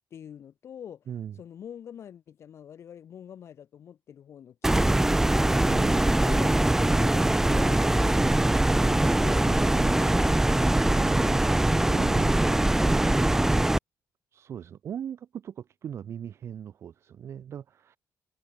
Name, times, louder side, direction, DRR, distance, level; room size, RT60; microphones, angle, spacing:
voice 1, 0.1-1.1 1.4-5.0, left 9 dB, 45° left, 5.1 m, -45 dB
voice 2, 1.1-1.4 5.7-6.1 10.9-11.4 11.9-13.2 14.3-18.0, right 9 dB, 45° right, 2.7 m, -39 dB
sound 1, 4.6-13.8, right 1 dB, 5° right, 1.1 m, -22 dB
cardioid pair, 155°, 6 cm